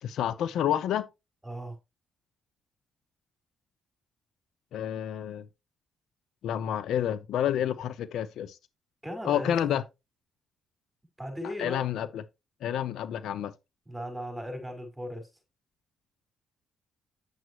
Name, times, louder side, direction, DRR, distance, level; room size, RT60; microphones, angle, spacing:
voice 1, 0.0-1.1 4.7-5.4 6.4-8.6 9.2-9.8 11.4-12.2 12.6-13.5, left 10 dB, 80° left, 0.8 m, -29 dB
voice 2, 1.4-1.8 9.0-9.5 11.2-11.8 13.9-15.3, equal, 5° right, 4.9 m, -37 dB
9.6 x 7.5 x 3.1 m
cardioid pair, 90°, 0 cm